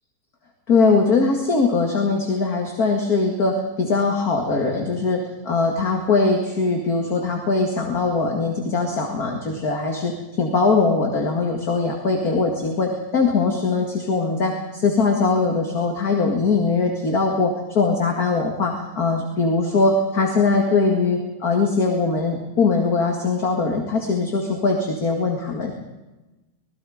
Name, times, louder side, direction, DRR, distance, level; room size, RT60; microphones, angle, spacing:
voice 1, 0.7-25.8, left 4 dB, 45° left, 1 dB, 2.5 m, -21 dB
26.0 x 19.5 x 5.0 m, 1.1 s
omnidirectional pair, 2.3 m